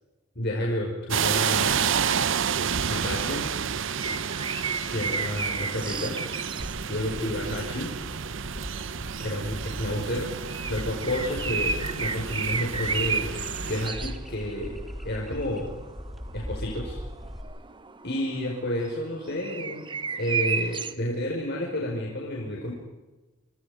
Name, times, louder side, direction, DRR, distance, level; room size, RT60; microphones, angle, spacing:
voice 1, 0.4-1.9 2.9-3.4 4.9-6.2 6.9-7.9 9.2-10.3 10.7-13.3 13.7-14.8 15.0-15.7 16.3-17.0 18.0-19.8 20.2-22.7, left 1 dB, 50° left, -2 dB, 5.6 m, -30 dB
sound 1, 1.1-13.9, right 7 dB, 60° right, 0.8 m, -30 dB
sound 2, 4.0-20.9, right 5 dB, 25° right, 1.1 m, -34 dB
sound 3, 6.6-17.4, equal, ahead, 3.2 m, -40 dB
29.5 x 25.0 x 5.2 m, 1.1 s
head